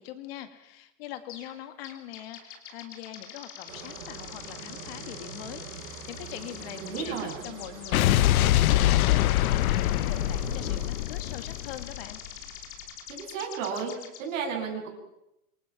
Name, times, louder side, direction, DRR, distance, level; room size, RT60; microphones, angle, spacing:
voice 1, 0.0-12.2, left 12 dB, 45° left, 9 dB, 1.8 m, -42 dB
sound 1, 1.3-1.6 1.8-14.2, left 8 dB, 30° left, 3.0 m, -44 dB
sound 2, 3.7-10.9, right 6 dB, 85° right, 7.4 m, -43 dB
voice 2, 6.7-7.3 13.1-13.9 14.2-14.9, right 6 dB, 65° right, 1 dB, 7.8 m, -33 dB
Explosion, 7.9-12.3, left 14 dB, 85° left, 0.8 m, -24 dB
27.5 x 24.0 x 5.9 m, 0.87 s
supercardioid pair, 175°, 42 cm